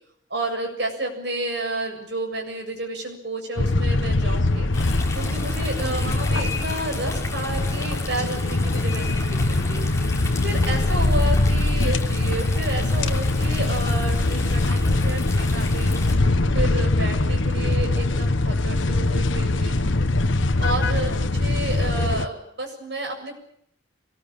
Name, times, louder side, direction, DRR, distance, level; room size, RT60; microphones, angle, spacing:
voice 1, 0.3-4.7 5.1-9.9 10.4-16.0 16.5-19.8 20.6-23.3, right 2 dB, 60° right, 2 dB, 7.5 m, -31 dB
sound 1, 3.6-22.2, left 2 dB, 80° left, 1.2 m, -22 dB
sound 2, 4.7-16.2, left 3 dB, 15° left, 3.6 m, -36 dB
24.5 x 20.0 x 8.8 m, 0.70 s
head